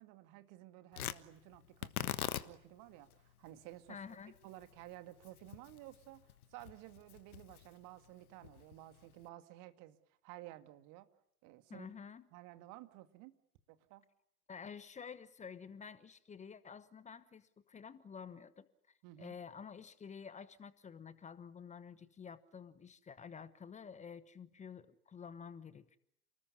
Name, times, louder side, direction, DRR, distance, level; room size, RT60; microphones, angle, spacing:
voice 1, 0.0-4.2 4.4-10.0 10.2-11.1 11.4-11.9 12.3-13.4 13.7-14.0 19.0-19.4, right 16 dB, 40° right, 10 dB, 2.2 m, -54 dB
Tearing, 0.9-9.3, left 12 dB, 65° left, 1.4 m, -45 dB
voice 2, 3.9-4.3 11.7-12.3 14.5-26.0, left 6 dB, 15° left, 16 dB, 1.1 m, -50 dB
29.0 x 20.0 x 9.7 m, 0.73 s
figure-of-eight pair, 95°, 47 cm